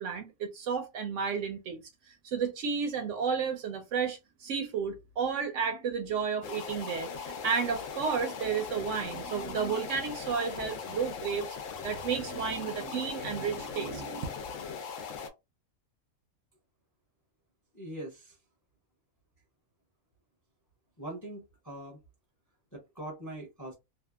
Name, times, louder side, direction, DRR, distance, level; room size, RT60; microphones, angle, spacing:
voice 1, 0.0-11.6 11.8-14.4, right 6 dB, 65° right, 0.8 m, -32 dB
sound 1, 6.4-15.3, left 6 dB, 70° left, 0.9 m, -40 dB
voice 2, 17.7-18.4 21.0-22.0 22.7-23.7, right 1 dB, 20° left, 0.6 m, -42 dB
2.7 x 2.3 x 2.3 m
omnidirectional pair, 1.5 m